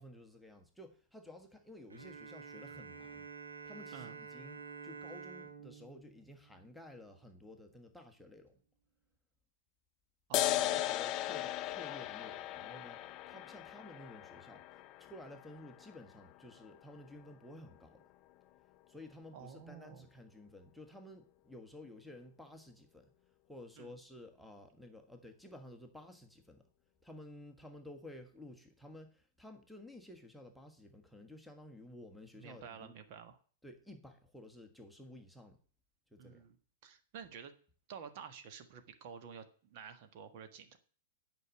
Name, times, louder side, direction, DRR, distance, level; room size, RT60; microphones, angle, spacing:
voice 1, 0.0-3.3 3.6-8.6 10.4-18.0 18.9-23.1 23.5-26.7 27.0-32.9 33.6-35.6 36.1-36.5, left 1 dB, ahead, 3 dB, 1.4 m, -53 dB
Bowed string instrument, 1.9-7.4, right 5 dB, 75° right, 1.9 m, -50 dB
sound 1, 10.3-17.3, left 14 dB, 35° left, 0.5 m, -38 dB
voice 2, 10.3-10.9 19.3-20.1 23.8-23.9 32.3-33.4 36.2-36.6 36.8-37.5 37.9-40.8, right 7 dB, 45° right, 8 dB, 1.4 m, -50 dB
9.6 x 5.3 x 7.9 m, 0.43 s
figure-of-eight pair, 100°, 0 cm